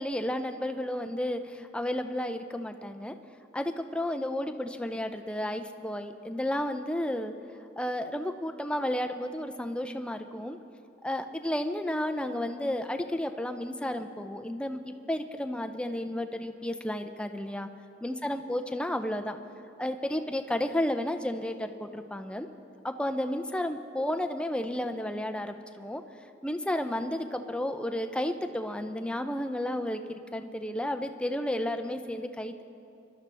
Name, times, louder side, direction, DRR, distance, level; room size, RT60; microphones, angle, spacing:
voice 1, 0.0-3.1 3.5-7.3 7.8-10.6 11.0-17.7 18.0-19.4 19.8-22.5 22.8-26.0 26.4-32.6, left 1 dB, 5° left, 7 dB, 0.5 m, -32 dB
24.5 x 12.0 x 3.4 m, 2.7 s
head